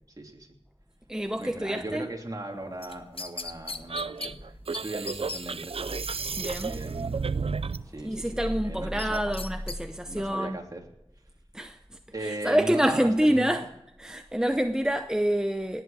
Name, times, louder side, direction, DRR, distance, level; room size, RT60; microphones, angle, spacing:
voice 1, 0.2-0.5 1.4-6.0 6.6-7.3 7.9-9.2 10.0-10.8 12.1-13.7, right 1 dB, 35° right, 3.1 m, -38 dB
voice 2, 1.1-2.1 6.3-6.8 8.0-10.6 11.5-11.8 12.2-13.7 14.0-15.8, equal, 5° right, 0.8 m, -27 dB
sound 1, 2.8-4.3 4.7-4.8 5.1-5.4 9.0-9.8 10.2-10.3, left 3 dB, 60° left, 1.0 m, -37 dB
sound 2, 3.9-7.9, right 5 dB, 65° right, 0.5 m, -32 dB
18.5 x 8.0 x 8.8 m
wide cardioid pair, 55°, 10 cm